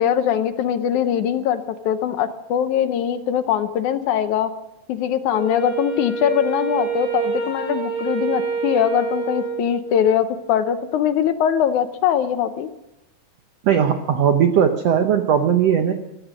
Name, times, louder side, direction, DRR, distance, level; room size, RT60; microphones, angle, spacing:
voice 1, 0.0-4.5 4.9-12.7, left 9 dB, 75° left, 10 dB, 1.9 m, -21 dB
Wind instrument woodwind instrument, 5.3-10.0, right 6 dB, 60° right, 6.6 m, -26 dB
voice 2, 13.6-15.9, right 8 dB, 80° right, 6 dB, 1.4 m, -18 dB
15.5 x 14.0 x 6.3 m, 0.93 s
omnidirectional pair, 4.1 m